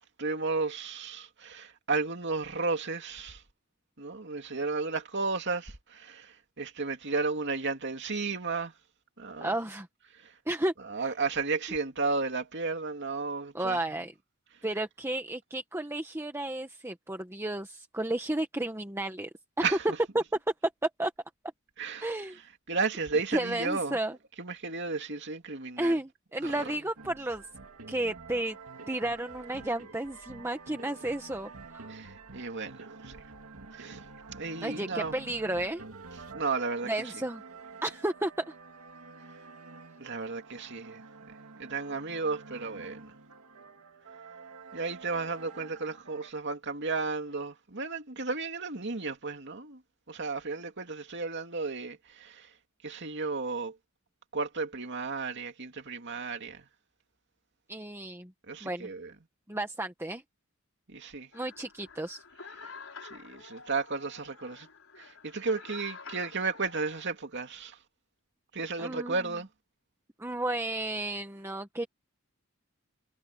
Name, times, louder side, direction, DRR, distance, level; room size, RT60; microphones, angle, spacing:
voice 1, 0.2-3.4 4.0-8.7 9.2-9.5 10.1-10.4 10.8-13.8 19.6-19.8 21.8-22.1 22.7-24.0 24.4-26.0 26.4-26.7 31.9-33.2 33.7-34.0 34.4-35.2 36.3-37.1 40.0-43.2 44.7-49.8 50.1-52.5 52.8-53.8 54.3-56.7 58.5-59.1 60.9-61.3 62.6-62.7 63.0-64.7 65.0-67.8 68.5-69.5, right 4 dB, 55° right, 2.6 m, -33 dB
voice 2, 9.4-9.9 10.5-10.7 13.5-14.1 14.6-19.3 20.1-20.2 20.8-21.1 22.0-22.4 23.3-24.2 25.8-27.4 27.9-28.6 28.9-31.9 34.6-35.8 36.8-37.4 37.8-38.5 57.7-58.3 58.6-58.9 59.5-60.2 61.3-62.2 68.8-69.3 70.2-71.9, right 1 dB, 10° right, 1.3 m, -32 dB
sound 1, 27.0-46.3, right 4 dB, 85° right, 2.2 m, -48 dB
sound 2, 61.3-67.0, left 5 dB, 65° left, 6.7 m, -48 dB
head